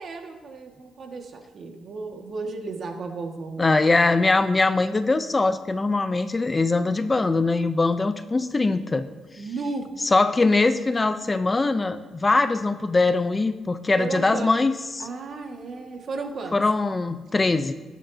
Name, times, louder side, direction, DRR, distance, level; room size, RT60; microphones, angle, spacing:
voice 1, 0.0-3.8 9.4-9.9 14.0-14.6 15.0-16.6, right 3 dB, 55° right, 2 dB, 1.9 m, -34 dB
voice 2, 3.6-9.1 10.1-14.7 16.5-17.7, left 3 dB, 25° left, 10 dB, 0.6 m, -22 dB
19.0 x 10.0 x 2.8 m, 1.3 s
cardioid pair, 90°, 0 cm